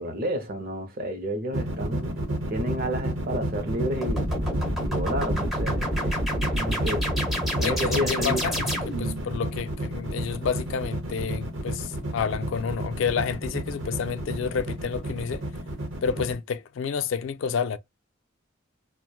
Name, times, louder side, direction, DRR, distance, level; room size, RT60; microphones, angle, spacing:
voice 1, 0.0-4.3 4.9-6.2 6.5-7.1 7.6-8.4, equal, 45° right, 0.6 m, -30 dB
sound 1, 1.5-16.4, right 1 dB, 70° right, 0.9 m, -31 dB
sound 2, 4.0-9.2, equal, ahead, 0.8 m, -28 dB
voice 2, 7.6-15.4 16.0-17.8, left 6 dB, 65° left, 0.3 m, -29 dB
3.0 x 2.1 x 2.2 m
head